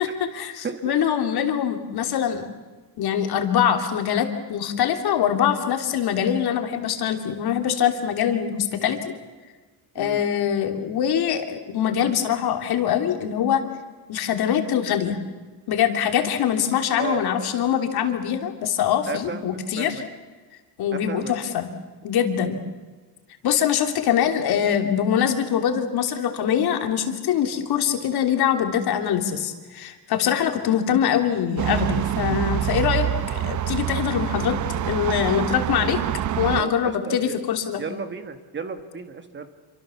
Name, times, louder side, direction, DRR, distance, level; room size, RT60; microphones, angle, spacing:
voice 1, 0.0-2.5 3.0-9.0 9.9-13.6 14.1-15.2 15.7-20.0 20.8-21.7 22.0-22.6 23.4-34.6 34.8-36.0 36.4-37.8, left 9 dB, 65° left, 5 dB, 3.1 m, -23 dB
voice 2, 9.9-10.3 17.0-17.5 19.1-20.0 20.9-21.3 28.0-28.1 36.6-37.4 37.8-39.5, right 5 dB, 25° right, 8 dB, 1.7 m, -33 dB
sound 1, 31.6-36.6, right 11 dB, 45° right, 0.8 m, -26 dB
28.0 x 25.0 x 7.1 m, 1.3 s
cardioid pair, 160°, 41 cm